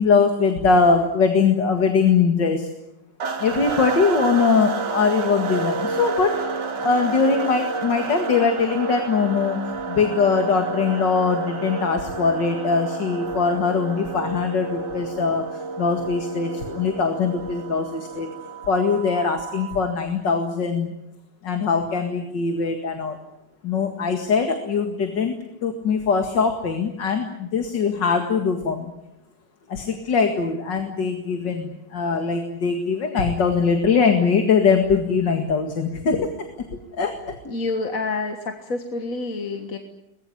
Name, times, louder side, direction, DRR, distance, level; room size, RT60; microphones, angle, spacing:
voice 1, 0.0-2.7 3.4-6.4 6.8-9.6 9.9-18.3 18.7-20.9 21.4-23.2 23.6-28.9 29.7-36.3 36.6-37.4, left 5 dB, 75° left, 5 dB, 2.6 m, -21 dB
sound 1, 3.2-19.9, right 4 dB, 75° right, 2.8 m, -30 dB
voice 2, 37.4-39.8, left 3 dB, 50° left, 5 dB, 2.1 m, -28 dB
23.0 x 20.5 x 10.0 m, 0.83 s
omnidirectional pair, 2.0 m